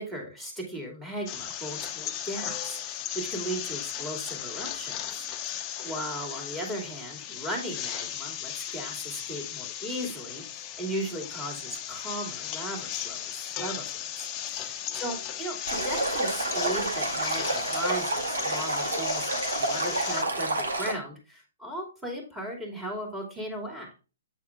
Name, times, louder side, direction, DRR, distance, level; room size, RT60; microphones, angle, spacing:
voice 1, 0.0-23.9, right 1 dB, 10° right, -1 dB, 2.6 m, -37 dB
sound 1, 1.3-20.2, left 10 dB, 25° left, 0.7 m, -36 dB
Stream, 15.7-20.9, right 2 dB, 90° right, 2.1 m, -29 dB
8.4 x 4.1 x 3.6 m, 0.33 s
hypercardioid pair, 145°, 0 cm